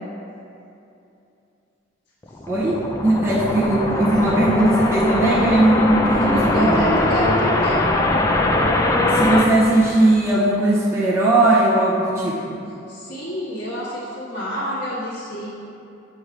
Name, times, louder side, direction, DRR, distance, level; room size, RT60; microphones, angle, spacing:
sound 1, 2.2-10.6, left 2 dB, 15° left, 0.3 m, -21 dB
voice 1, 2.5-6.8 9.1-12.4, right 1 dB, 15° right, -7 dB, 0.7 m, -18 dB
voice 2, 6.3-7.8 12.9-15.5, equal, 50° left, -10 dB, 1.4 m, -27 dB
7.9 x 3.2 x 4.9 m, 2.7 s
head